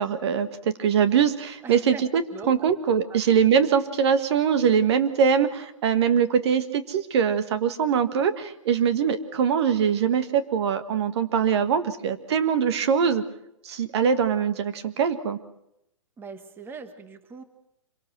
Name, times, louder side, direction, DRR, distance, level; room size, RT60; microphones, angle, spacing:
voice 1, 0.0-2.2 2.5-13.2 13.6-15.4, right 7 dB, 55° right, 12 dB, 1.6 m, -22 dB
voice 2, 1.6-2.5 3.1-3.2 16.2-17.4, right 4 dB, 15° right, 10 dB, 1.4 m, -41 dB
26.0 x 18.0 x 6.1 m, 0.80 s
hypercardioid pair, 140°, 17 cm